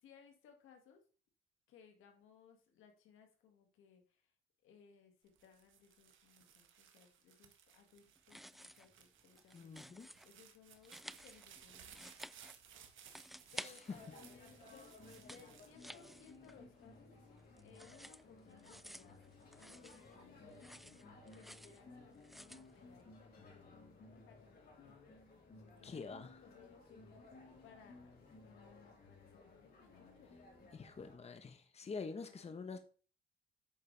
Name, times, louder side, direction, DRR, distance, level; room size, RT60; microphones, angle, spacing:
voice 1, 0.0-1.0 1.7-4.3 4.6-9.9 10.2-12.3 13.5-20.7 21.3-24.5 25.6-28.2 28.4-30.3 31.8-32.8, left 6 dB, 90° left, 2.1 m, -64 dB
sound 1, 5.3-16.6 17.2-17.7, right 8 dB, 75° right, 1.5 m, -61 dB
sound 2, 8.2-9.0 9.2-10.3 10.7-12.8 13.1-14.3 14.6-16.8 17.1-20.2 20.5-21.8 22.2-22.7, equal, ahead, 0.3 m, -53 dB
voice 2, 9.5-10.1 13.6-14.0 25.8-26.4 30.7-32.8, left 4 dB, 30° left, 1.1 m, -46 dB
sound 3, 13.8-31.2, left 3 dB, 50° left, 4.0 m, -59 dB
8.9 x 6.6 x 3.4 m
cardioid pair, 90°, 20 cm